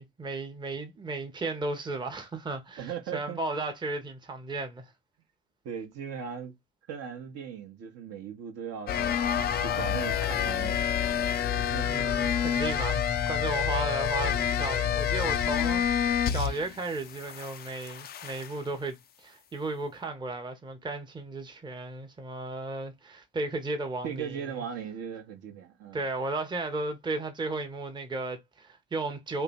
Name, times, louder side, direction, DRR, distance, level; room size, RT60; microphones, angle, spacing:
voice 1, 0.0-4.9 11.5-24.6 25.9-29.4, right 2 dB, 10° right, 0.8 m, -35 dB
voice 2, 2.8-3.4 5.6-6.5 6.9-9.2 9.6-10.8 11.6-12.1 24.0-26.0, right 7 dB, 45° right, 0.8 m, -38 dB
sound 1, 8.9-16.8 17.0-18.6, left 8 dB, 25° left, 0.4 m, -28 dB
2.7 x 2.2 x 4.1 m
figure-of-eight pair, 50°, 36 cm